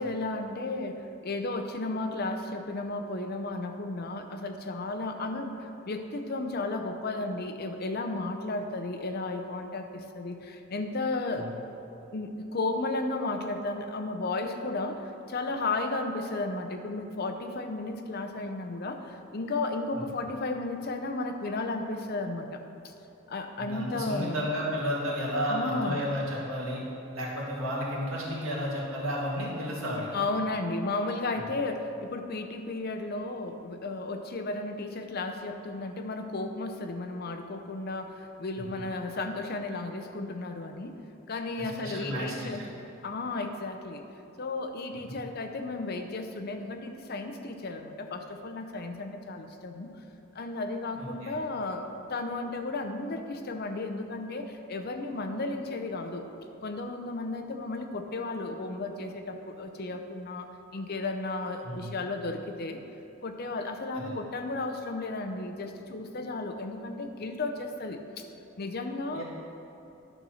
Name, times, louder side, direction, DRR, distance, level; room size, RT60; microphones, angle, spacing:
voice 1, 0.0-11.5 12.1-22.6 23.3-24.4 25.5-26.0 30.1-40.9 41.3-42.6 43.0-44.0 44.4-49.9 50.3-56.2 56.6-62.8 63.2-68.2 68.6-69.2, left 2 dB, 45° left, 6 dB, 0.6 m, -34 dB
voice 2, 23.6-26.8 27.1-30.1 41.6-42.7 51.0-51.3 61.6-61.9 63.9-64.2 69.1-69.2, equal, 75° right, -4 dB, 2.1 m, -32 dB
11.0 x 4.2 x 6.3 m, 2.9 s
head